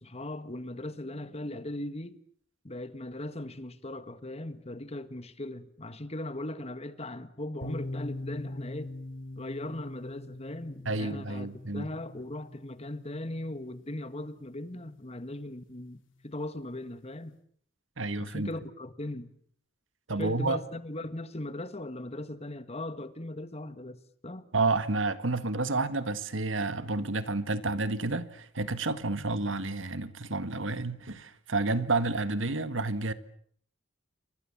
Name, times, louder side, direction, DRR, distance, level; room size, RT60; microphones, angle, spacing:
voice 1, 0.0-2.2 2.6-8.9 9.4-17.4 18.2-19.3 20.2-24.5, left 1 dB, 30° left, 1.8 m, -39 dB
sound 1, 7.6-15.3, left 1 dB, 75° left, 3.1 m, -43 dB
voice 2, 10.9-11.9 18.0-18.5 20.1-20.6 24.5-33.1, right 3 dB, 75° right, 1.8 m, -30 dB
29.0 x 24.5 x 7.3 m
head